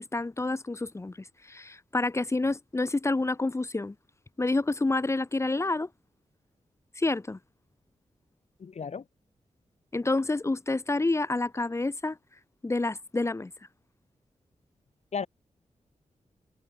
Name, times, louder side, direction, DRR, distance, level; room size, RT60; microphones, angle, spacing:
voice 1, 0.0-3.9 4.4-5.9 7.0-7.4 9.9-12.2 12.6-13.5, left 2 dB, 20° left, 3.1 m, -28 dB
voice 2, 8.6-9.0 15.1-15.3, left 6 dB, 60° left, 7.9 m, -34 dB
wide cardioid pair, 170°, 13 cm